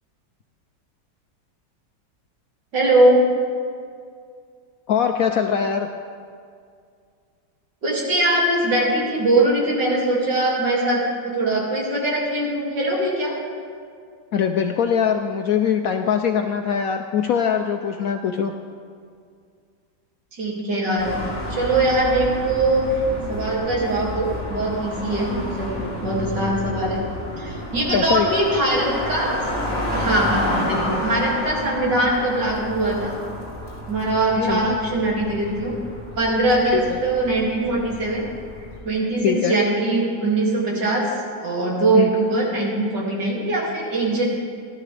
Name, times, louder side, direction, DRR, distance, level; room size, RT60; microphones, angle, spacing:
voice 1, 2.7-3.3 7.8-13.4 20.3-21.1 21.5-22.9 23.3-25.8 26.0-27.0 27.4-29.5 29.8-33.2 33.9-35.8 36.2-38.3 38.8-41.1 41.4-44.3, right 2 dB, 70° right, -4 dB, 3.1 m, -21 dB
voice 2, 4.9-5.9 14.3-18.5 27.9-28.4 34.4-34.8 36.7-37.0 39.2-39.6 41.9-42.1, left 7 dB, 70° left, 5 dB, 0.9 m, -22 dB
sound 1, 21.0-38.8, equal, 15° left, 3.6 m, -30 dB
17.0 x 12.5 x 3.3 m, 2.2 s
omnidirectional pair, 1.9 m